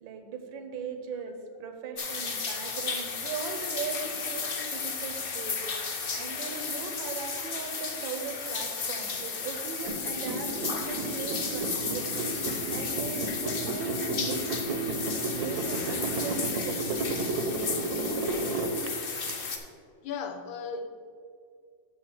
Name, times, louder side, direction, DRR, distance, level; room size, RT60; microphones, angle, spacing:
voice 1, 0.0-5.6 6.1-12.2 12.7-17.6, right 5 dB, 80° right, 6 dB, 1.6 m, -39 dB
sound 1, 2.0-19.6, left 5 dB, 60° left, 0.6 m, -34 dB
sound 2, 9.9-19.3, right 2 dB, 60° right, 1.1 m, -33 dB
voice 2, 20.0-20.9, left 5 dB, 85° left, 5 dB, 1.6 m, -35 dB
6.6 x 5.6 x 6.3 m, 2.1 s
omnidirectional pair, 2.1 m